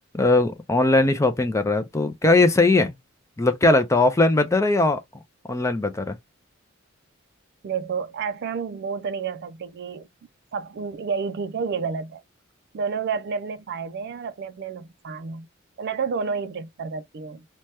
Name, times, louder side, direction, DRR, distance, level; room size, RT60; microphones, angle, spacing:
voice 1, 0.1-2.9 3.4-5.0 5.5-6.2, left 2 dB, 15° left, 0.4 m, -19 dB
voice 2, 7.6-10.1 10.5-12.2 12.7-15.5 15.8-17.4, right 5 dB, 55° right, 0.4 m, -30 dB
2.7 x 2.2 x 3.2 m
head